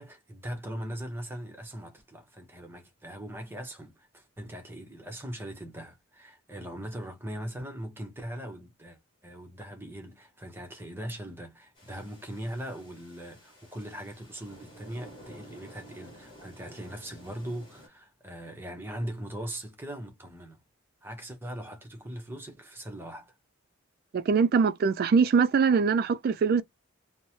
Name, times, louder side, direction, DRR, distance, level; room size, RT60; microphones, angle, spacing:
voice 1, 0.0-20.6 21.0-23.3, equal, 10° right, 0.7 m, -40 dB
sound 1, 11.8-17.9, equal, 25° left, 1.4 m, -52 dB
voice 2, 24.1-26.6, right 5 dB, 45° right, 0.3 m, -23 dB
3.1 x 2.0 x 2.7 m
head